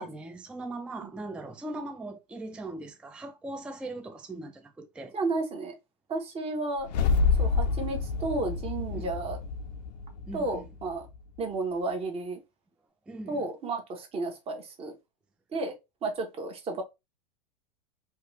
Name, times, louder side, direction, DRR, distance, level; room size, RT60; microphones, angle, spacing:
voice 1, 0.0-5.1 8.9-9.1 10.3-10.6 13.1-13.4, right 2 dB, 5° right, 0.3 m, -40 dB
voice 2, 5.1-5.7 6.1-6.9 7.4-9.4 10.3-11.1 11.4-12.4 13.3-14.9 15.5-15.7 16.0-16.8, right 3 dB, 30° right, 0.9 m, -32 dB
sound 1, 6.8-11.2, left 5 dB, 80° left, 0.5 m, -28 dB
2.8 x 2.3 x 3.1 m
hypercardioid pair, 100°, 21 cm